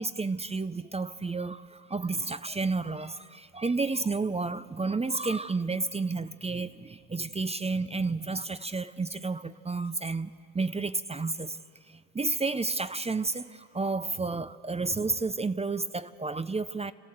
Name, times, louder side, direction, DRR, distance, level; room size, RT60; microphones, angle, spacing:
voice 1, 0.0-11.6 11.9-16.9, right 3 dB, 20° right, 14 dB, 0.5 m, -31 dB
30.0 x 13.0 x 7.8 m, 2.6 s
cardioid pair, 85°, 33 cm